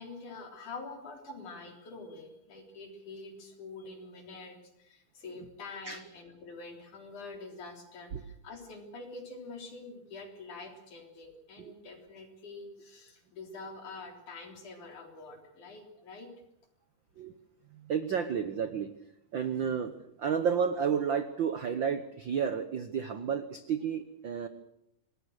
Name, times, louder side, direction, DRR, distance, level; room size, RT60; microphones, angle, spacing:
voice 1, 0.0-16.3, left 3 dB, 65° left, 4 dB, 5.1 m, -46 dB
voice 2, 17.7-18.9 19.3-19.9 20.2-24.5, right 7 dB, 85° right, 10 dB, 1.0 m, -31 dB
26.0 x 20.0 x 6.6 m, 0.79 s
omnidirectional pair, 3.8 m